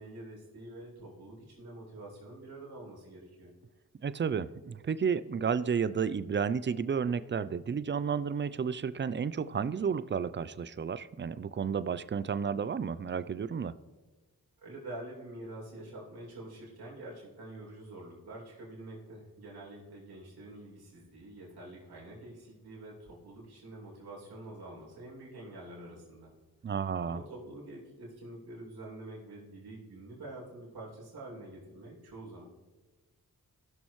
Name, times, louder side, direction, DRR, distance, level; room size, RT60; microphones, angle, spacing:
voice 1, 0.0-3.5 14.6-26.3 27.0-32.4, right 1 dB, 90° right, -4 dB, 2.7 m, -46 dB
voice 2, 4.0-13.7 26.6-27.2, right 6 dB, 30° right, 16 dB, 0.4 m, -32 dB
15.5 x 6.2 x 3.1 m, 1.2 s
cardioid pair, 50°, 37 cm